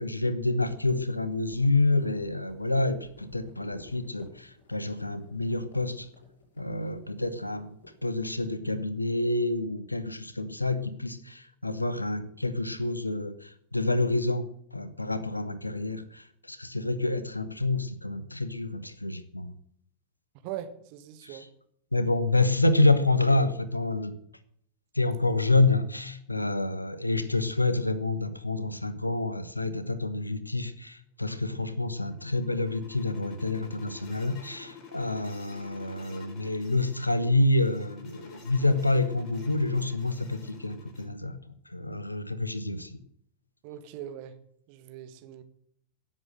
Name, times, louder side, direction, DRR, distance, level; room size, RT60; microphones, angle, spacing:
voice 1, 0.0-6.1 6.6-7.7 8.0-19.5 21.2-21.4 21.9-24.1 24.9-41.4 41.7-43.0, left 2 dB, 85° left, 15 dB, 1.2 m, -28 dB
sound 1, 0.5-8.0, left 3 dB, 65° left, 6.7 m, -53 dB
voice 2, 20.4-21.5 43.6-44.4 44.7-45.4, right 11 dB, 45° right, 9 dB, 1.8 m, -41 dB
sound 2, 31.7-41.1, left 5 dB, 40° left, 4.5 m, -49 dB
17.0 x 7.7 x 7.7 m, 0.67 s
figure-of-eight pair, 90°, 0 cm